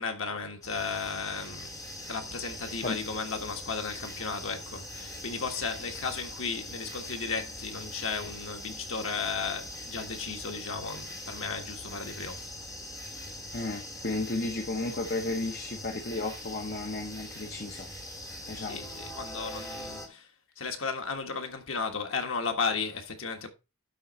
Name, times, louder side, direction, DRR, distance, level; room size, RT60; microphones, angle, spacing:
voice 1, 0.0-1.7 2.1-12.4 18.7-20.3 20.6-23.5, left 5 dB, 75° left, 1.6 m, -34 dB
sound 1, 0.6-20.1, left 1 dB, 20° left, 2.9 m, -42 dB
voice 2, 13.5-17.9 18.5-18.8, left 2 dB, 50° left, 1.0 m, -33 dB
11.5 x 3.9 x 4.3 m
head